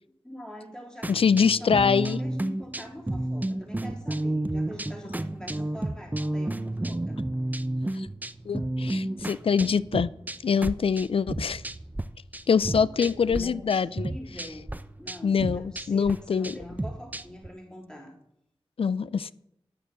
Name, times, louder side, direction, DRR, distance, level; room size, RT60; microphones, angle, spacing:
voice 1, 0.2-7.2 12.6-18.1, equal, 5° left, -2 dB, 3.4 m, -44 dB
sound 1, 1.0-12.1 12.3-13.4 13.7-17.5, right 1 dB, 15° right, 0.6 m, -32 dB
voice 2, 1.1-2.2 7.9-8.1 8.5-10.1 10.4-11.6 12.5-14.1 15.2-16.5 18.8-19.3, left 6 dB, 75° left, 19 dB, 0.4 m, -24 dB
11.0 x 6.4 x 6.7 m, 0.79 s
wide cardioid pair, 60°, 10 cm